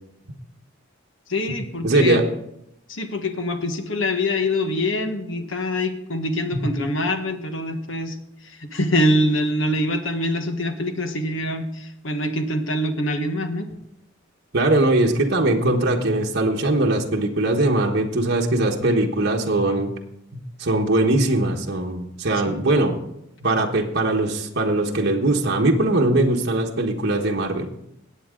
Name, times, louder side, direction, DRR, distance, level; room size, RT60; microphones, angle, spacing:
voice 1, 1.3-2.2 2.9-8.2 8.4-13.6 22.5-22.6, left 1 dB, 75° left, 6 dB, 1.3 m, -24 dB
voice 2, 1.8-2.2 6.5-6.6 14.5-19.9 20.3-22.9 23.4-27.7, right 2 dB, 55° right, 0 dB, 1.3 m, -21 dB
18.0 x 8.2 x 3.8 m, 0.81 s
head